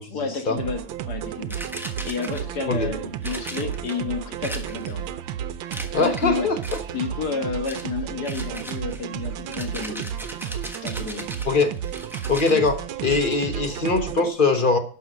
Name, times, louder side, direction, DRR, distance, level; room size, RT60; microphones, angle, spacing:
voice 1, 0.1-1.6 2.0-5.1 5.9-6.5 6.9-10.1 10.8-11.3 12.5-12.6, left 5 dB, 55° left, 4 dB, 2.1 m, -30 dB
sound 1, 0.6-14.3, right 9 dB, 80° right, 1.4 m, -32 dB
sound 2, 1.5-2.6 3.2-4.0 4.4-5.1 5.7-6.3 6.6-7.1 7.7-7.9 8.2-12.6, equal, ahead, 0.7 m, -38 dB
voice 2, 5.9-6.6 11.4-11.7 12.3-12.8 13.0-14.8, left 3 dB, 35° left, 6 dB, 0.9 m, -21 dB
11.5 x 5.7 x 6.1 m, 0.43 s
omnidirectional pair, 2.1 m